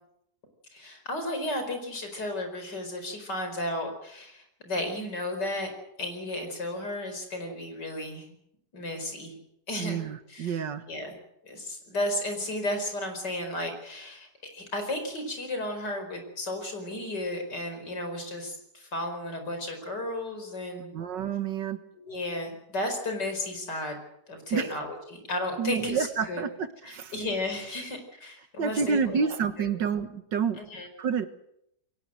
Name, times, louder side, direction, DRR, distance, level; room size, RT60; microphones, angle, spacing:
voice 1, 0.7-5.7 6.0-8.3 8.7-9.4 9.7-10.0 10.3-10.6 10.9-11.2 11.4-20.9 21.9-24.0 24.3-26.4 26.8-29.7 30.6-30.9, left 1 dB, 75° left, 6 dB, 5.5 m, -34 dB
voice 2, 9.8-10.9 20.9-21.8 24.5-24.7 25.6-27.1 28.6-30.6 31.0-31.3, right 6 dB, 90° right, 10 dB, 2.1 m, -29 dB
22.5 x 18.5 x 7.8 m, 0.76 s
omnidirectional pair, 1.9 m